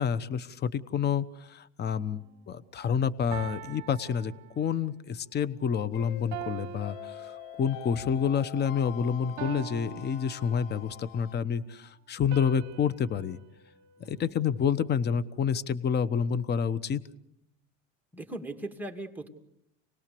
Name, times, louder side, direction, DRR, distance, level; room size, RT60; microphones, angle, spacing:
voice 1, 0.0-13.4 14.1-17.0, left 7 dB, 30° left, 16 dB, 1.0 m, -29 dB
sound 1, 1.8-2.2 3.3-4.9 6.3-8.0 9.4-11.0 12.3-14.7, right 12 dB, 50° right, 1.3 m, -44 dB
sound 2, 5.9-11.3, left 15 dB, 65° left, 1.0 m, -45 dB
voice 2, 14.0-14.4 18.1-19.3, right 2 dB, 5° right, 3 dB, 2.7 m, -39 dB
28.0 x 19.5 x 6.9 m, 0.79 s
supercardioid pair, 110°, 36 cm